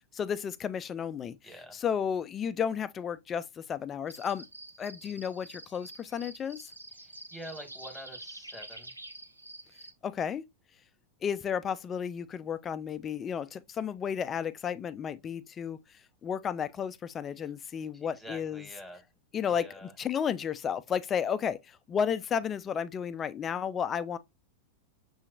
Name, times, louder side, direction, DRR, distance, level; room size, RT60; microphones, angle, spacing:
voice 1, 0.1-1.4 1.7-4.5 4.8-6.7 10.0-10.4 11.2-15.8 16.2-18.6 19.3-24.2, left 7 dB, 25° left, 0.3 m, -33 dB
voice 2, 1.4-1.8 6.9-8.9 17.4-17.5 17.9-19.1 19.4-19.9, equal, 5° left, 1.4 m, -47 dB
sound 1, 4.1-9.9, right 2 dB, 85° right, 0.5 m, -47 dB
6.2 x 2.8 x 2.3 m
figure-of-eight pair, 90°, 0 cm